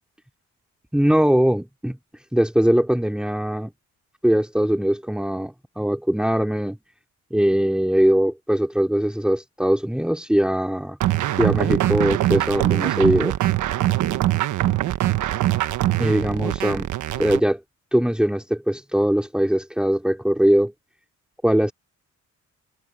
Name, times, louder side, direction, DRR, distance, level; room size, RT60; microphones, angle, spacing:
voice 1, 0.9-2.0 2.3-3.7 4.2-6.8 7.3-11.0 11.4-13.3 16.0-16.9 17.2-17.6 17.9-20.7 21.4-21.7, equal, 5° right, 3.5 m, -21 dB
sound 1, 11.0-17.4, right 14 dB, 80° right, 1.3 m, -22 dB
cardioid pair, 90°, 30 cm